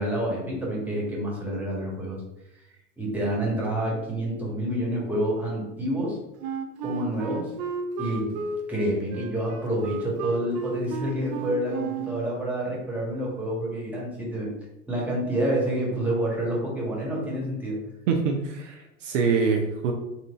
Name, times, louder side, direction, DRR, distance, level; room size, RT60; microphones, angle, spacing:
voice 1, 0.0-2.2 3.0-6.2 6.8-7.5 8.0-8.4 8.7-14.5 14.9-17.8, right 1 dB, 5° right, -4 dB, 1.5 m, -28 dB
Wind instrument woodwind instrument, 6.4-12.3, right 5 dB, 35° right, 0.4 m, -33 dB
voice 2, 18.1-19.9, right 5 dB, 60° right, 2 dB, 0.7 m, -25 dB
4.2 x 2.6 x 3.5 m, 0.90 s
figure-of-eight pair, 95°, 42 cm